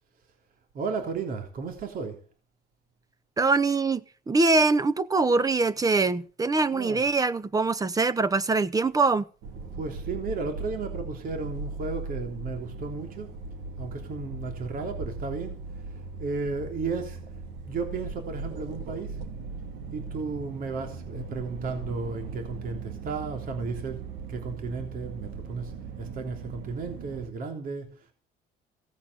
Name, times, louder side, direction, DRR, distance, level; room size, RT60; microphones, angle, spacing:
voice 1, 0.7-2.2 6.7-7.0 9.7-13.3 13.8-15.6 16.2-17.2 17.7-19.2 19.9-28.1, right 4 dB, 55° right, 3.3 m, -34 dB
voice 2, 3.4-4.0 4.3-9.2, right 3 dB, 20° right, 1.2 m, -23 dB
sound 1, 9.4-27.3, right 4 dB, 85° right, 2.5 m, -39 dB
17.0 x 8.7 x 8.0 m
cardioid pair, 110°, 17 cm